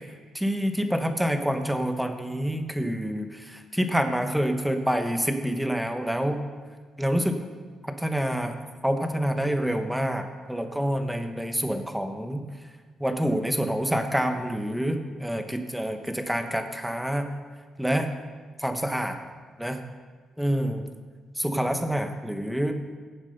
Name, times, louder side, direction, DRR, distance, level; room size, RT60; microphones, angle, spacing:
voice 1, 0.3-6.4 7.0-7.4 7.8-12.4 13.0-17.3 17.8-18.1 18.6-19.2 19.6-19.8 20.4-20.8 21.4-23.0, equal, 5° right, 6 dB, 1.2 m, -27 dB
16.0 x 7.3 x 5.5 m, 1.5 s
cardioid pair, 90°, 0 cm